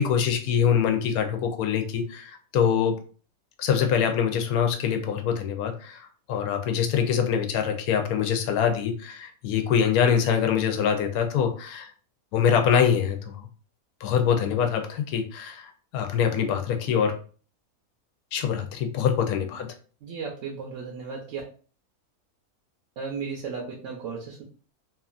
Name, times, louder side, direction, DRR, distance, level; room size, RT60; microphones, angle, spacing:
voice 1, 0.0-3.0 3.6-11.9 12.3-13.5 14.0-17.2 18.3-19.7, left 7 dB, 80° left, 5 dB, 1.0 m, -24 dB
voice 2, 20.0-21.4 23.0-24.4, right 5 dB, 70° right, -1 dB, 0.8 m, -35 dB
2.9 x 2.4 x 2.4 m, 0.40 s
omnidirectional pair, 1.6 m